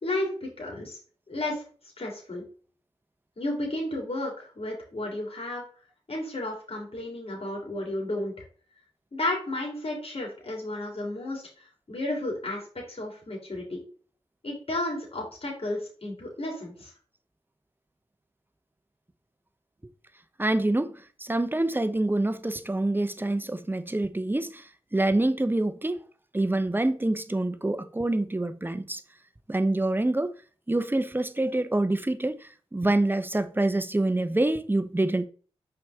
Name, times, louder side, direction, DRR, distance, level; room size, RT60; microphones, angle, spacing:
voice 1, 0.0-1.0 1.3-1.6 2.0-2.5 3.4-5.6 6.1-8.3 9.1-12.6 12.9-13.8 14.4-16.9, left 1 dB, 55° left, 3.3 m, -32 dB
voice 2, 20.4-26.0 26.3-29.0 29.5-30.3 30.7-35.3, right 2 dB, 15° right, 0.8 m, -26 dB
5.8 x 4.8 x 3.6 m
cardioid pair, 40°, 12 cm